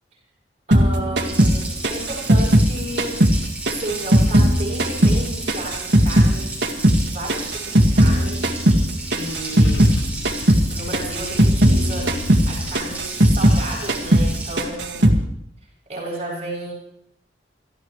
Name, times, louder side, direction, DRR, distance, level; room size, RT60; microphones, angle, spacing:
voice 1, 0.7-3.1 3.6-6.6 7.1-8.5 9.1-9.9 10.7-15.2 15.9-16.7, right 2 dB, 40° right, -3 dB, 7.7 m, -32 dB
sound 1, 0.7-3.4 3.7-6.4 6.6-10.0 10.2-10.7 10.9-13.6 13.9-14.3 14.6-15.2, equal, 75° right, 2.0 m, -17 dB
Water tap faucet, 1.2-14.6, right 2 dB, 10° right, 7.1 m, -34 dB
Car / Engine starting / Idling, 9.2-12.7, left 3 dB, 80° left, 0.8 m, -32 dB
29.0 x 14.0 x 3.2 m, 0.75 s
head